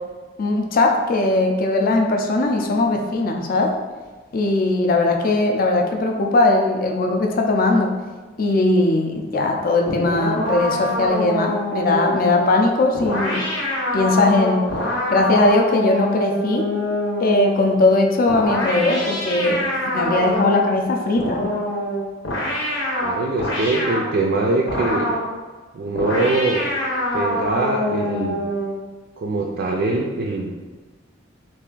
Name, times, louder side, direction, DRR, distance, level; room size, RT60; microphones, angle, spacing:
voice 1, 0.4-3.7 4.3-8.0 8.4-13.5 13.9-14.7 15.1-16.7 17.2-21.4, left 2 dB, 50° left, 2 dB, 0.4 m, -19 dB
sound 1, 9.9-17.7 18.3-20.8 21.2-24.1 24.7-25.3 25.9-28.8, left 1 dB, 80° left, 0.9 m, -25 dB
voice 2, 23.0-25.1 25.7-26.7 27.1-28.5 29.2-30.5, right 2 dB, 55° right, -1 dB, 0.3 m, -23 dB
3.3 x 2.5 x 3.8 m, 1.3 s
head